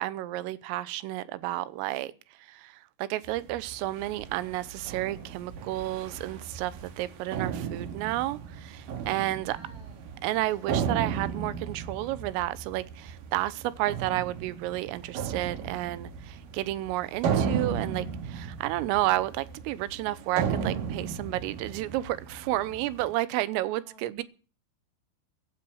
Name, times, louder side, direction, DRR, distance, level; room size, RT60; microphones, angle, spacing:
voice 1, 0.0-2.1 2.5-2.7 3.0-9.6 10.2-24.2, right 16 dB, 80° right, 3.5 m, -31 dB
sound 1, 3.2-23.1, right 7 dB, 55° right, 2.7 m, -35 dB
voice 2, 9.3-10.3 23.7-24.2, right 2 dB, 30° right, 8.0 m, -54 dB
15.5 x 12.5 x 6.3 m
omnidirectional pair, 6.0 m